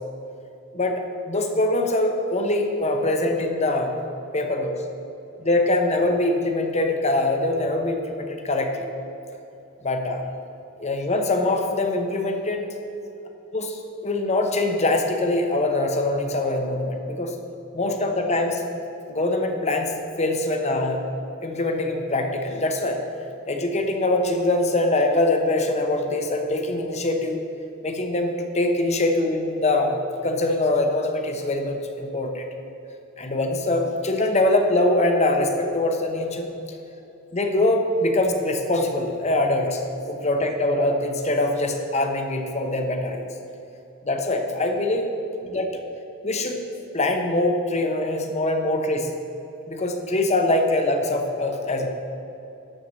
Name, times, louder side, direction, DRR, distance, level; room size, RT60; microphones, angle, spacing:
voice 1, 0.7-4.0 4.3-4.8 5.4-8.9 9.8-10.2 10.8-12.6 13.5-17.3 17.7-18.6 19.1-21.0 21.4-23.0 23.5-27.4 27.8-30.0 30.2-32.4 33.2-36.5 37.3-39.8 40.1-43.3 44.0-45.1 45.4-45.8 46.2-46.6 46.9-49.1 49.7-51.9, left 2 dB, 30° left, 4 dB, 1.0 m, -23 dB
11.5 x 4.8 x 7.4 m, 2.9 s
head